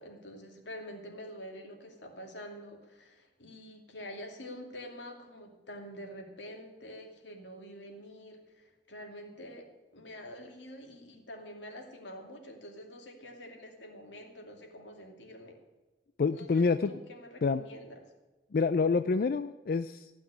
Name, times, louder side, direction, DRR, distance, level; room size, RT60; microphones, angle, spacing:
voice 1, 0.0-9.7 9.9-15.6 16.3-18.0, equal, 85° left, 2 dB, 2.6 m, -47 dB
voice 2, 16.2-16.9 17.4-17.6 18.5-20.1, left 4 dB, 55° left, 11 dB, 0.4 m, -27 dB
15.5 x 6.0 x 9.8 m, 1.1 s
head